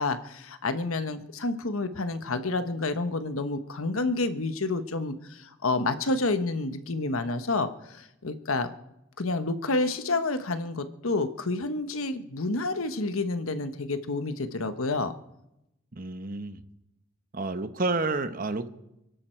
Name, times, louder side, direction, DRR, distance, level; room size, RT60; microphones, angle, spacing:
voice 1, 0.0-8.7 9.2-15.1, left 3 dB, 90° left, 1.1 m, -29 dB
voice 2, 15.9-16.6 17.3-18.7, right 3 dB, 45° right, 1.1 m, -30 dB
28.0 x 11.5 x 4.5 m
head